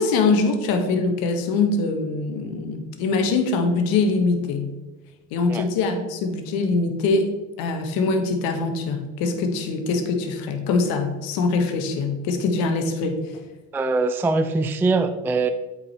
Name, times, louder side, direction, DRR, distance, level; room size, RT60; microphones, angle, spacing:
voice 1, 0.0-4.7 5.3-7.3 7.6-13.4, left 3 dB, 65° left, 6 dB, 1.4 m, -23 dB
voice 2, 13.7-15.5, right 3 dB, 5° right, 9 dB, 0.3 m, -22 dB
8.2 x 5.1 x 4.3 m, 1.1 s
hypercardioid pair, 70°, 40 cm